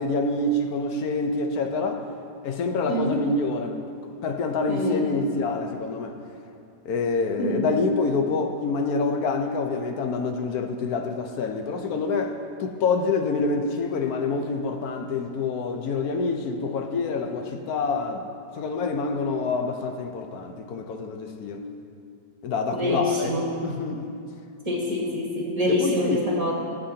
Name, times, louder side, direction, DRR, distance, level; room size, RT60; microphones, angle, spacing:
voice 1, 0.0-2.0 2.4-3.7 4.2-6.1 6.8-18.2 18.6-21.6 22.4-23.3 23.6-24.1 25.7-26.2, left 3 dB, 65° left, 4 dB, 1.1 m, -26 dB
voice 2, 2.9-3.2 4.7-5.1 7.4-7.7 22.7-23.5 24.6-26.5, left 1 dB, 20° right, -3 dB, 1.4 m, -25 dB
17.0 x 8.2 x 2.8 m, 2.5 s
omnidirectional pair, 1.9 m